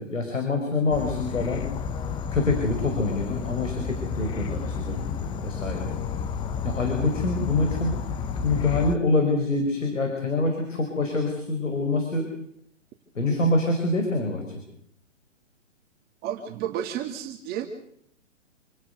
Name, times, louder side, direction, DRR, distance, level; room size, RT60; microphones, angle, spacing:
voice 1, 0.0-1.7 2.3-5.9 6.6-8.0 8.4-12.3 13.2-14.4, left 2 dB, 85° left, 3 dB, 5.4 m, -25 dB
Insect / Frog, 0.9-9.0, left 6 dB, 15° left, 0.8 m, -31 dB
voice 2, 16.2-17.7, right 10 dB, 25° right, 3 dB, 2.3 m, -31 dB
27.5 x 17.5 x 6.7 m, 0.71 s
hypercardioid pair, 130°, 38 cm